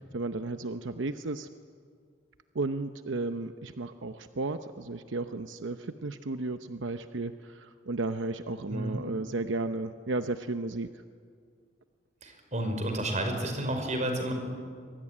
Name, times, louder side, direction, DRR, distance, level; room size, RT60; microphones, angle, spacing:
voice 1, 0.0-1.5 2.5-10.9, right 2 dB, 85° right, 9 dB, 0.9 m, -34 dB
voice 2, 8.7-9.0 12.2-14.3, right 1 dB, 40° right, 5 dB, 5.0 m, -31 dB
25.0 x 24.0 x 10.0 m, 2.1 s
head